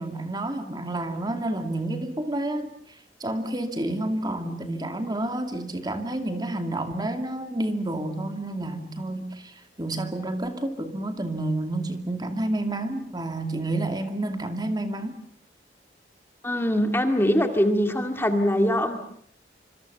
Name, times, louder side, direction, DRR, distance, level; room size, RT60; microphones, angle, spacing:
voice 1, 0.0-2.7 3.2-15.2, right 1 dB, 25° right, 7 dB, 2.4 m, -29 dB
voice 2, 16.4-19.0, equal, 15° left, 6 dB, 2.0 m, -22 dB
26.5 x 26.0 x 6.9 m, 0.67 s
head